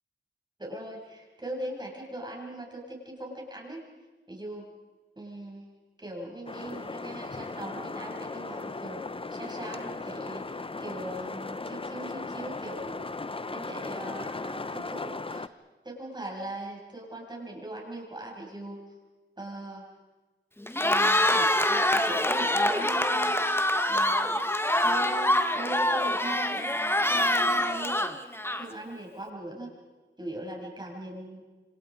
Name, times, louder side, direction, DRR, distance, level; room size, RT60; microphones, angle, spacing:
voice 1, 0.6-3.8 4.3-4.7 5.2-5.7 6.0-13.2 13.5-15.5 15.8-18.8 19.4-19.8 20.8-23.3 23.8-24.4 24.8-26.7 27.1-28.0 28.6-29.7 30.2-31.4, right 1 dB, 20° right, -1 dB, 7.8 m, -40 dB
sound 1, 6.5-15.5, left 3 dB, 30° left, 0.9 m, -37 dB
Cheering, 20.6-28.9, left 1 dB, 10° left, 1.3 m, -25 dB
28.0 x 26.0 x 5.2 m, 1.2 s
wide cardioid pair, 90°, 19 cm